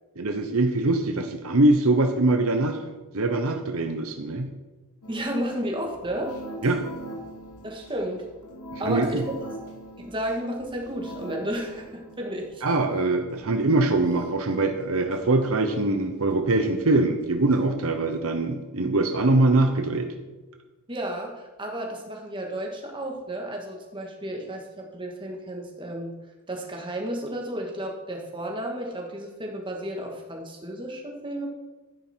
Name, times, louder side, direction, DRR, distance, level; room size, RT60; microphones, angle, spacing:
voice 1, 0.2-2.8 3.1-4.5 6.6-6.8 8.7-9.2 12.6-20.1, right 2 dB, 65° right, 6 dB, 0.9 m, -23 dB
sound 1, 5.0-14.5 14.8-17.7 18.1-18.2, right 1 dB, 80° left, 2.4 m, -43 dB
voice 2, 5.1-6.3 7.6-8.2 8.8-9.3 10.0-12.6 20.9-26.1 26.5-31.5, right 1 dB, 20° right, 1 dB, 2.0 m, -32 dB
12.0 x 10.0 x 4.6 m, 1.2 s
head